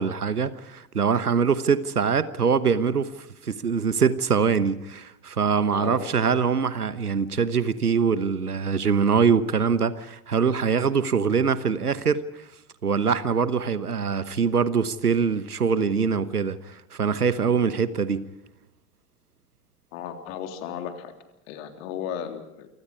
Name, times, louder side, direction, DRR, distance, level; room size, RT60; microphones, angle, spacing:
voice 1, 0.0-3.1 3.4-12.4 12.8-18.2, right 6 dB, 85° right, 1.2 m, -23 dB
voice 2, 5.7-6.2 19.9-21.1 21.5-22.7, left 8 dB, 60° left, 3.5 m, -35 dB
29.0 x 25.0 x 4.8 m
figure-of-eight pair, 65°, 44 cm